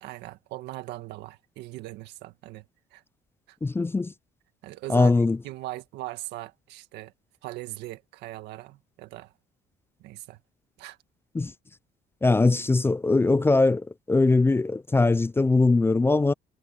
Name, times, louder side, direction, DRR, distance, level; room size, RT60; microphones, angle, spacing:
voice 1, 0.0-2.7 2.9-3.0 3.5-3.6 4.6-5.1 5.4-7.1 7.4-9.3 10.0-10.4 10.8-11.0, right 16 dB, 85° right, 1.8 m, -39 dB
voice 2, 3.6-4.1 4.9-5.4 11.3-11.5 12.2-16.3, left 3 dB, 15° left, 0.4 m, -21 dB
cardioid pair, 110°, 17 cm